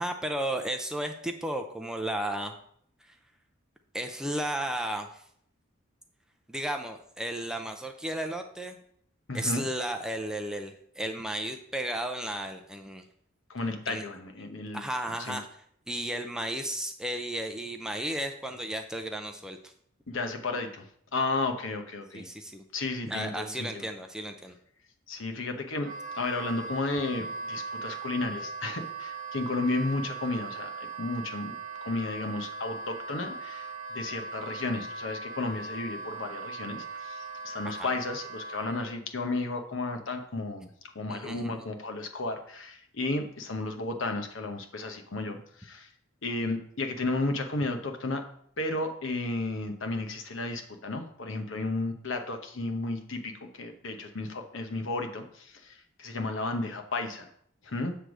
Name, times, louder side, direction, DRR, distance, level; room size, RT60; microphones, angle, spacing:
voice 1, 0.0-2.5 3.0-3.2 3.9-5.2 6.5-8.8 9.3-13.1 13.9-14.0 14.7-15.5 15.9-19.7 22.1-22.6 23.1-24.6 37.6-37.9 41.1-41.6, right 1 dB, 5° right, 4 dB, 0.5 m, -34 dB
voice 2, 9.3-9.7 13.5-14.9 15.3-15.4 20.1-20.9 21.1-22.3 22.7-23.8 25.1-25.9 26.1-31.5 31.8-40.7 40.9-45.9 46.2-48.3 48.6-57.3 57.6-57.9, left 2 dB, 70° left, 5 dB, 0.9 m, -33 dB
Wind instrument woodwind instrument, 25.8-39.0, right 4 dB, 40° right, 1.1 m, -39 dB
7.8 x 3.4 x 6.1 m, 0.67 s
head